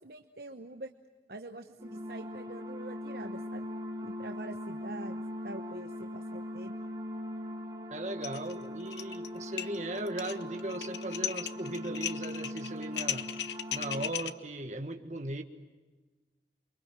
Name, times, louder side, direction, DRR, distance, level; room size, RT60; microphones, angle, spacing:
voice 1, 0.0-0.9 1.3-3.7 4.0-6.7, right 2 dB, 55° right, 6 dB, 1.0 m, -45 dB
sound 1, 1.8-14.1, left 1 dB, 20° right, 3.4 m, -40 dB
voice 2, 7.9-13.3 13.7-15.4, right 1 dB, 40° right, 6 dB, 1.7 m, -38 dB
sound 2, 8.2-8.5 8.8-9.3 9.6-14.3, left 10 dB, 75° left, 0.9 m, -36 dB
29.0 x 24.0 x 7.5 m, 1.3 s
head